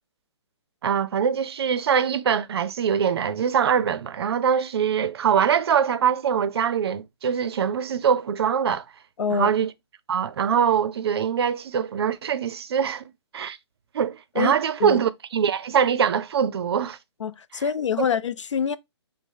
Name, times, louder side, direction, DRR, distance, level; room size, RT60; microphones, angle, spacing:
voice 1, 0.8-8.8 9.3-9.7 10.1-13.0 13.3-13.6 13.9-17.0 17.5-17.6 18.0-18.1, right 7 dB, 60° right, 0.5 m, -23 dB
voice 2, 9.2-9.5 14.4-14.5 14.8-15.0 17.2-18.8, left 6 dB, 90° left, 0.4 m, -25 dB
5.2 x 2.0 x 3.4 m
hypercardioid pair, 140°, 15 cm